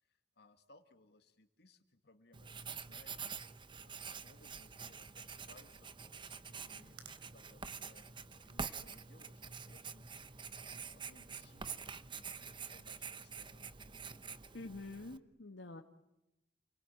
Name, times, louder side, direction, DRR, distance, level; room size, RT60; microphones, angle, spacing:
voice 1, 0.0-3.3 3.8-10.1 10.5-11.9 12.4-13.8, left 2 dB, 65° left, 6 dB, 2.3 m, -65 dB
Writing, 2.3-15.2, right 5 dB, 25° right, 0.9 m, -47 dB
sound 1, 4.3-10.4, right 7 dB, 70° right, 3.5 m, -64 dB
voice 2, 14.5-15.8, left 2 dB, 85° left, 3 dB, 1.6 m, -47 dB
29.5 x 22.5 x 9.1 m, 0.91 s
head